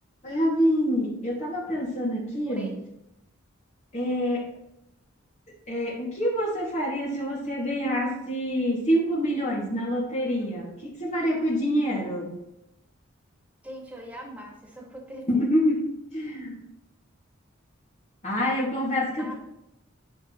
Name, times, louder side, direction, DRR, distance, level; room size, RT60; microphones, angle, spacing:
voice 1, 0.2-2.7 3.9-4.5 5.7-12.4 15.3-15.8 16.1-16.6 18.2-19.3, equal, 35° left, -5 dB, 2.6 m, -26 dB
voice 2, 2.4-2.7 13.6-15.5 19.2-19.3, equal, 10° right, -1 dB, 2.3 m, -41 dB
11.5 x 6.4 x 3.2 m, 0.86 s
head